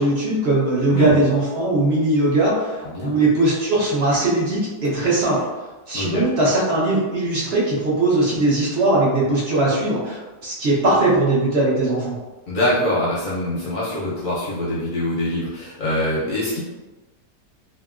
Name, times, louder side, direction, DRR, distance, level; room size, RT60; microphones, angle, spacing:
voice 1, 0.0-5.4 5.9-12.2, right 2 dB, 50° right, -7 dB, 0.9 m, -20 dB
voice 2, 0.9-1.2 2.9-3.1 5.9-6.2 12.5-16.6, left 1 dB, 65° left, -6 dB, 0.9 m, -24 dB
2.9 x 2.5 x 2.4 m, 1.2 s
omnidirectional pair, 1.9 m